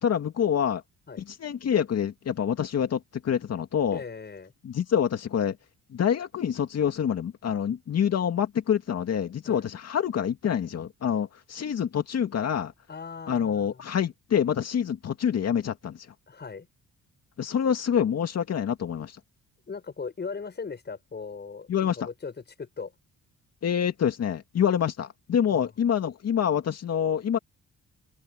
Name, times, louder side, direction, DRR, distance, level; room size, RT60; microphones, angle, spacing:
voice 1, 0.0-0.8 1.3-4.0 4.6-5.6 5.9-12.7 13.3-16.0 17.4-19.2 21.7-22.0 23.6-27.4, left 8 dB, 55° left, 2.4 m, -26 dB
voice 2, 3.9-4.5 9.4-9.7 12.9-13.8 16.3-16.7 19.7-22.9 25.5-25.7, left 5 dB, 35° left, 7.3 m, -38 dB
cardioid pair, 90°, 30 cm